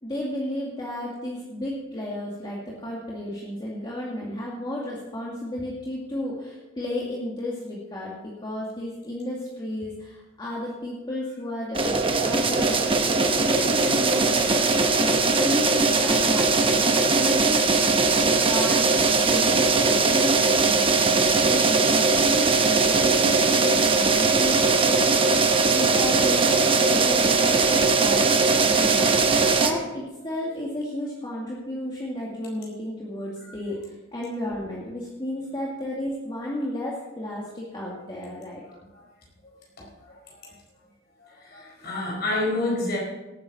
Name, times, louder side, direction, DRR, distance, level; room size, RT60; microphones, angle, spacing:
voice 1, 0.0-12.8 13.5-17.9 18.1-38.6, left 1 dB, 25° left, -5 dB, 2.1 m, -33 dB
sound 1, 11.7-29.7, right 4 dB, 30° right, 1.2 m, -20 dB
voice 2, 39.4-40.5 41.2-43.0, left 2 dB, 55° left, -3 dB, 4.7 m, -30 dB
18.0 x 9.5 x 4.2 m, 1.1 s
head